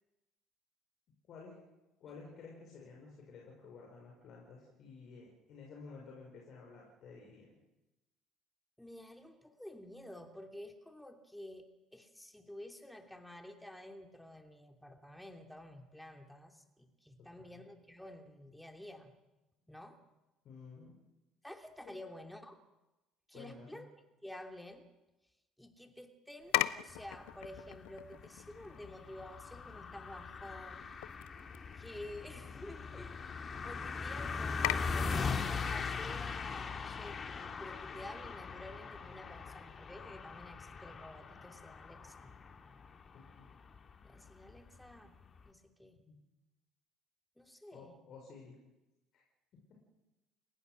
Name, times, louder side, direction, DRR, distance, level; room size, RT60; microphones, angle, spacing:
voice 1, 1.3-1.6 2.0-7.6 17.2-17.6 20.4-21.0 21.8-22.0 23.3-23.8 43.1-43.5 46.1-46.2 47.7-48.6 49.1-49.2 49.5-49.9, left 4 dB, 50° left, -1 dB, 5.7 m, -53 dB
voice 2, 8.8-19.1 19.7-20.0 21.4-22.6 23.3-23.9 24.2-24.9 25.6-30.9 31.7-33.3 33.6-42.4 44.0-45.2 45.4-46.1 47.4-48.0, left 1 dB, 5° left, 5 dB, 2.8 m, -51 dB
sound 1, 26.4-38.4, left 19 dB, 65° left, 0.6 m, -42 dB
sound 2, 26.9-45.5, left 5 dB, 35° left, 2.3 m, -41 dB
29.5 x 16.0 x 6.4 m, 1.0 s
figure-of-eight pair, 55°, 0 cm